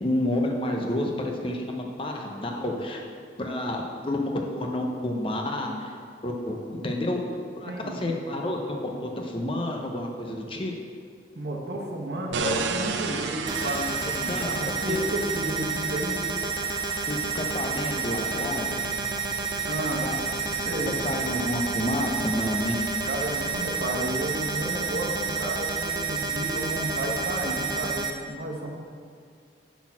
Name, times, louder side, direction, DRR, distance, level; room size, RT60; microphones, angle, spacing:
voice 1, 0.0-3.0 3.4-6.0 6.2-7.2 7.6-10.7 14.3-14.5 14.9-15.0 17.1-18.7 20.0-20.3 20.9-22.8, left 1 dB, 30° left, 1 dB, 0.6 m, -29 dB
voice 2, 7.7-8.2 11.3-16.2 19.7-20.0 20.6-20.9 23.0-28.7, right 1 dB, 65° right, -1 dB, 1.0 m, -32 dB
sound 1, 12.3-23.5, right 5 dB, 80° right, 0.4 m, -37 dB
sound 2, 13.5-28.1, right 4 dB, 25° right, 0.4 m, -30 dB
6.2 x 4.1 x 5.8 m, 2.2 s
head